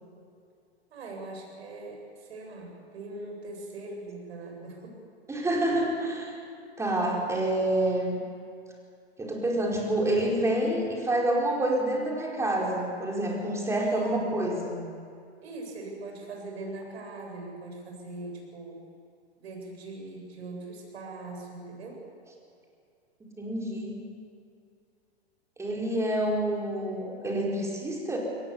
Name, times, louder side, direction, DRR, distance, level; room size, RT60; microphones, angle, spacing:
voice 1, 0.9-5.0 13.7-14.5 15.4-18.8 19.4-22.0, right 2 dB, 70° right, 1 dB, 7.7 m, -41 dB
voice 2, 5.3-6.4 6.8-8.2 9.2-14.8 23.2-24.0 25.6-28.2, right 1 dB, 10° right, -2 dB, 4.7 m, -28 dB
23.0 x 19.5 x 7.2 m, 2.4 s
hypercardioid pair, 130°, 33 cm